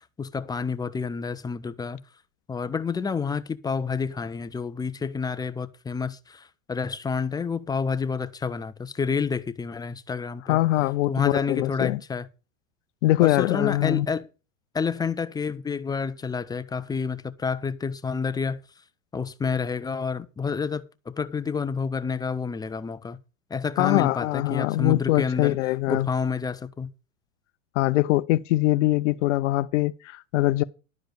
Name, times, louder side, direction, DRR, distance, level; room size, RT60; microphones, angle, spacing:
voice 1, 0.0-2.0 2.5-10.6 11.1-12.3 13.2-14.3 14.7-18.6 19.1-23.2 23.5-25.6 25.9-26.9, left 5 dB, 10° left, 0.6 m, -29 dB
voice 2, 10.5-12.0 13.0-14.1 23.8-26.1 27.7-30.6, left 17 dB, 70° left, 0.6 m, -23 dB
12.0 x 4.9 x 7.9 m
hypercardioid pair, 120°, 38 cm